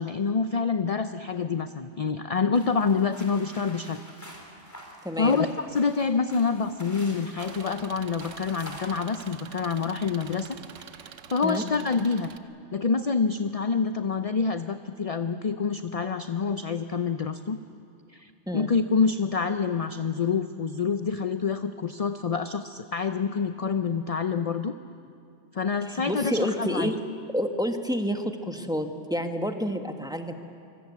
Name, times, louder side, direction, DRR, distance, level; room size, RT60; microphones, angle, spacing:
voice 1, 0.0-4.0 5.2-10.6 11.3-12.3 12.7-17.6 18.1-24.7 25.5-26.9, left 5 dB, 40° left, 10 dB, 0.6 m, -27 dB
sound 1, 2.5-10.8, equal, 15° left, 4.0 m, -47 dB
voice 2, 5.0-5.4 11.4-11.6 18.5-18.7 25.9-26.9 27.3-30.3, equal, 5° right, 5 dB, 1.3 m, -29 dB
Engine, 7.4-12.4, right 8 dB, 90° right, 1.2 m, -46 dB
25.0 x 23.5 x 8.4 m, 2.4 s
omnidirectional pair, 1.3 m